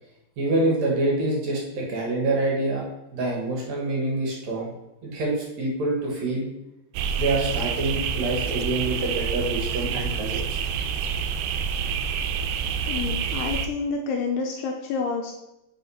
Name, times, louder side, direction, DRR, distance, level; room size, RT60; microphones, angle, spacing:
voice 1, 0.4-2.9 3.1-4.7 5.0-6.5 7.2-10.6, right 2 dB, 70° right, -2 dB, 1.6 m, -26 dB
sound 1, 6.9-13.7, right 6 dB, 90° right, 3.0 m, -28 dB
voice 2, 12.9-15.3, left 5 dB, 85° left, 1 dB, 2.4 m, -28 dB
7.7 x 4.6 x 5.5 m, 0.93 s
omnidirectional pair, 5.3 m